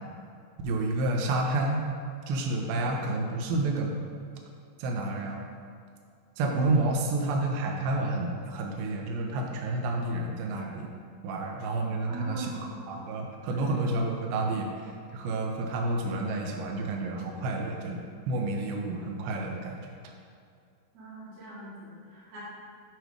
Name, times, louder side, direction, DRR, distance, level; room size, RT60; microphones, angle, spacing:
voice 1, 0.6-1.8 2.3-3.9 4.8-5.5 6.4-10.9 11.2-12.5 12.9-14.7 15.1-19.7, right 2 dB, 75° right, 0 dB, 2.4 m, -29 dB
voice 2, 12.1-12.9 13.5-14.0 20.9-22.4, right 3 dB, 50° right, -10 dB, 2.7 m, -42 dB
9.1 x 3.2 x 5.1 m, 2.4 s
omnidirectional pair, 4.5 m